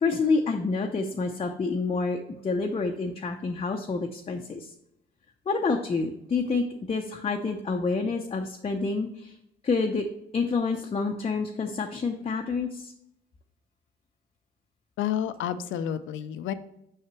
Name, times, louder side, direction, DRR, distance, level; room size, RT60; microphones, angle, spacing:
voice 1, 0.0-4.7 5.5-9.4 9.6-10.1 10.3-12.9, left 4 dB, 30° left, 2 dB, 0.6 m, -28 dB
voice 2, 15.0-16.5, left 9 dB, 80° left, 12 dB, 0.6 m, -30 dB
6.5 x 5.7 x 3.0 m, 0.80 s
cardioid pair, 90°, 20 cm